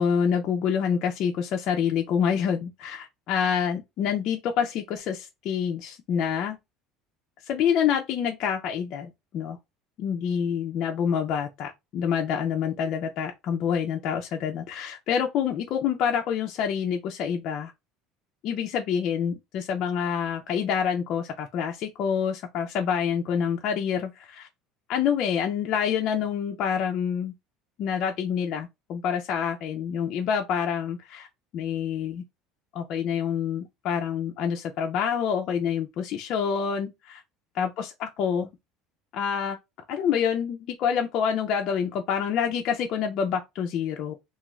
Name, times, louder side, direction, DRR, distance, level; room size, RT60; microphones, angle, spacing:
voice 1, 0.0-6.6 7.5-9.6 10.0-17.7 18.4-24.5 24.9-27.3 27.8-31.3 31.5-32.2 32.7-37.2 37.6-38.5 39.1-39.6 39.9-44.1, left 7 dB, 45° left, 0.4 m, -27 dB
2.4 x 2.3 x 3.0 m
cardioid pair, 160°, 0 cm